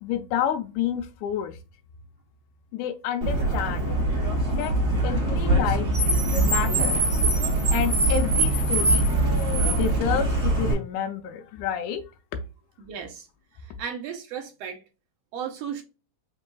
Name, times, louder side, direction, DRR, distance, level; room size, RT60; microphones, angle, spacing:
voice 1, 0.0-1.6 2.7-3.9 4.5-4.7 5.0-5.9 6.2-7.0 7.7-9.1 9.7-12.0, left 9 dB, 85° left, 2.1 m, -29 dB
Car, 3.2-10.7, right 2 dB, 35° right, 2.4 m, -23 dB
voice 2, 12.8-13.3 13.6-14.8 15.3-15.8, right 7 dB, 70° right, 1.7 m, -35 dB
5.4 x 3.2 x 2.3 m
omnidirectional pair, 3.4 m